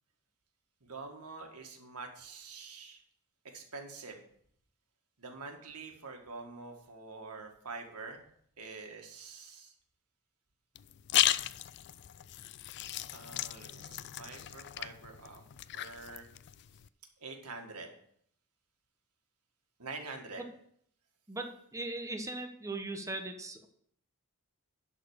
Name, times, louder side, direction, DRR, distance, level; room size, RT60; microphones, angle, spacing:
voice 1, 0.8-3.0 3.5-4.2 5.2-8.2 8.6-9.7 13.1-15.4 15.7-16.3 17.2-17.9 19.8-20.4, right 3 dB, 85° right, 3 dB, 1.7 m, -46 dB
sound 1, 10.7-16.9, left 13 dB, 50° left, 0.3 m, -35 dB
voice 2, 21.3-23.7, right 2 dB, 15° right, 5 dB, 1.0 m, -39 dB
11.5 x 4.3 x 6.4 m, 0.67 s
head